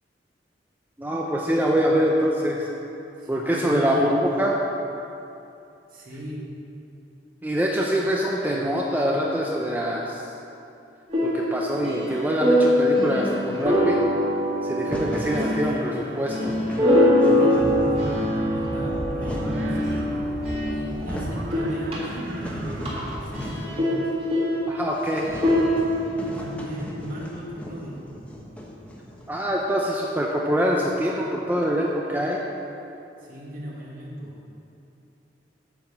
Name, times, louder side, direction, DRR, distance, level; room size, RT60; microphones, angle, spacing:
voice 1, 1.0-2.7 3.3-4.5 7.4-10.2 11.2-14.0 14.6-16.5 24.7-25.3 29.3-32.4, equal, 10° right, -2 dB, 0.6 m, -24 dB
voice 2, 3.2-4.3 5.9-6.4 15.4-15.9 17.1-20.1 20.7-24.0 26.2-28.0 33.2-34.3, equal, 50° right, -4 dB, 1.9 m, -37 dB
sound 1, 11.1-21.1 21.4-26.5, left 1 dB, 35° right, 2.3 m, -24 dB
sound 2, 14.8-15.4 16.0-16.1 16.3-16.9 17.2-18.1 18.8-19.7 20.5-20.6 20.8-21.4 21.9-23.8 24.1-24.2 24.5-24.6 25.0-29.5, equal, 10° left, 1.0 m, -37 dB
sound 3, 17.6-23.3, right 1 dB, 80° right, 0.9 m, -35 dB
9.1 x 5.7 x 7.0 m, 2.8 s
head